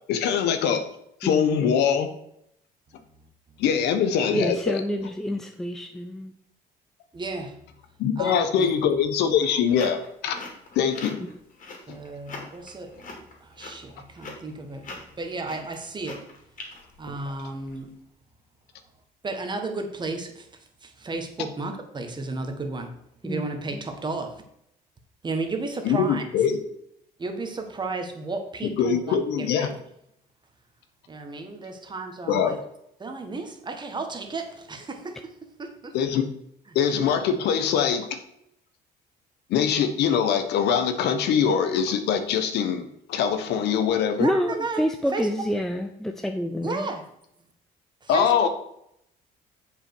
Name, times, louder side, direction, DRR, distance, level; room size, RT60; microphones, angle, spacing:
voice 1, 0.1-0.8 1.2-2.1 3.6-4.8 8.0-10.4 10.7-11.2 11.9-12.0 25.8-26.6 28.8-29.7 32.3-32.6 35.9-36.3 36.7-38.1 39.5-44.3 48.1-48.5, left 7 dB, 80° left, 1.2 m, -23 dB
voice 2, 1.2-1.7 4.3-6.3 23.2-23.5 44.2-46.9, equal, ahead, 0.6 m, -28 dB
voice 3, 7.1-7.6 8.2-8.8 11.9-13.0 13.4-16.3 17.0-17.9 19.2-24.4 25.2-26.5 27.2-29.8 31.1-32.6 33.0-36.0 36.7-36.8 44.2-44.8 45.1-45.3 46.6-47.1 48.0-48.3, right 3 dB, 25° right, 1.5 m, -33 dB
sound 1, 9.2-17.8, left 3 dB, 50° left, 2.9 m, -42 dB
7.2 x 5.5 x 6.2 m
cardioid pair, 110°, 17 cm